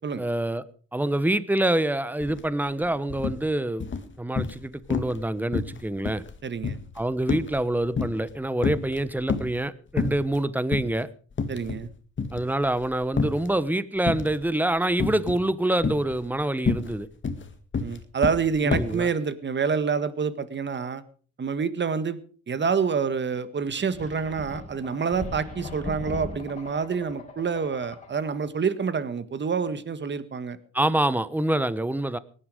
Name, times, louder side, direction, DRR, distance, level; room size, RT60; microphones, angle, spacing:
voice 1, 0.2-0.6 0.9-3.8 4.2-6.2 7.0-11.1 12.3-17.1 18.6-19.1 30.7-32.2, right 1 dB, 5° right, 1.0 m, -26 dB
sound 1, 2.2-2.4 2.7-3.4 3.8-4.6 4.9-5.2 5.5-8.3 8.6-9.6 10.0-10.4 10.7-10.9 11.3-11.9 12.2-13.5 14.1-14.5 15.0-15.5 15.8-19.0, left 5 dB, 40° left, 2.1 m, -29 dB
voice 2, 6.4-6.8 11.5-11.9 17.8-21.0 21.4-22.2 22.5-30.6, right 6 dB, 35° right, 1.6 m, -27 dB
sound 2, 23.9-28.5, left 2 dB, 25° left, 5.1 m, -39 dB
18.5 x 11.5 x 5.0 m
cardioid pair, 90°, 30 cm